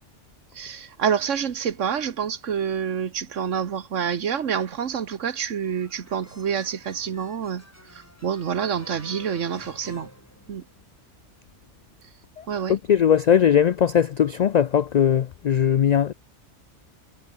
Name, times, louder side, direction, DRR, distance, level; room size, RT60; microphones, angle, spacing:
voice 1, 0.5-7.6 7.9-10.1 10.5-10.6 12.5-12.8, right 7 dB, 85° right, 1.5 m, -27 dB
sound 1, 5.6-11.0, equal, 10° left, 6.3 m, -48 dB
voice 2, 12.7-16.1, left 9 dB, 85° left, 0.3 m, -19 dB
omnidirectional pair, 1.3 m